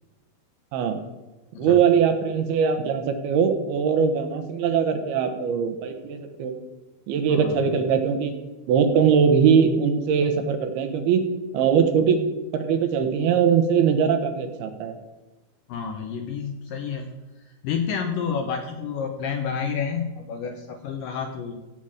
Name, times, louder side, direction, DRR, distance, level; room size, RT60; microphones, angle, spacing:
voice 1, 1.6-6.6 7.1-8.3 8.7-11.2 11.5-12.2 12.5-14.9, right 7 dB, 75° right, 7 dB, 2.9 m, -21 dB
voice 2, 7.3-7.8 15.7-17.1 17.6-21.6, left 6 dB, 80° left, 5 dB, 2.0 m, -30 dB
16.5 x 7.3 x 5.0 m, 1.1 s
omnidirectional pair, 4.7 m